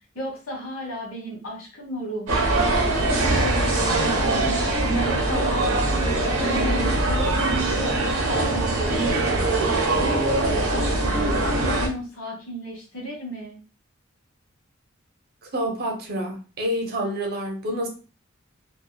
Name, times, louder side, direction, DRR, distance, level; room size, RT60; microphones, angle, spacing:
voice 1, 0.1-2.6 2.8-3.0 3.4-11.3 11.6-13.6, equal, 70° left, -2 dB, 1.1 m, -34 dB
sound 1, 2.3-11.9, right 2 dB, 75° right, 0.9 m, -22 dB
voice 2, 15.5-17.9, equal, 50° right, 2 dB, 0.7 m, -28 dB
2.8 x 2.3 x 2.2 m, 0.34 s
head